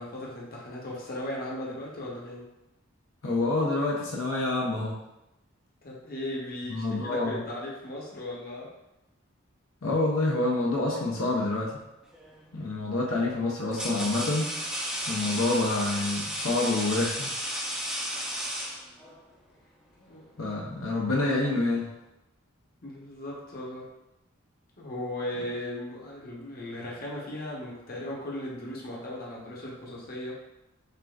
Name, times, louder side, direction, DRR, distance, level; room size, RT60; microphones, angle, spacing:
voice 1, 0.0-2.5 5.8-8.7 20.0-20.5 22.8-23.9 24.8-30.4, left 1 dB, 45° left, -4 dB, 0.9 m, -37 dB
voice 2, 3.2-5.0 6.7-7.4 9.8-11.8 12.5-14.5 15.1-17.3 20.4-21.9, left 2 dB, 80° left, -3 dB, 0.7 m, -27 dB
sound 1, 12.1-12.5 13.3-19.2, equal, 5° right, 0.6 m, -34 dB
6.5 x 2.6 x 2.3 m, 0.93 s
head